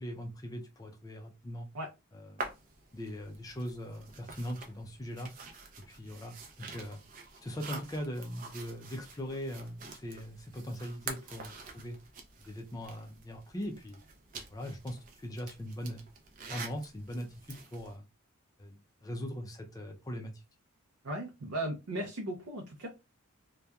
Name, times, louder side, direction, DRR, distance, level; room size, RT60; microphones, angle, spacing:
voice 1, 0.0-1.7 2.2-2.5 2.9-5.3 5.9-7.0 7.4-12.0 12.5-14.0 14.5-16.1 16.5-18.1 18.6-20.4, equal, 15° left, 3 dB, 0.4 m, -40 dB
sound 1, 2.4-18.0, right 4 dB, 40° right, 0.5 m, -47 dB
voice 2, 21.0-22.9, right 1 dB, 85° right, 1 dB, 0.5 m, -37 dB
2.8 x 2.2 x 2.3 m, 0.26 s
head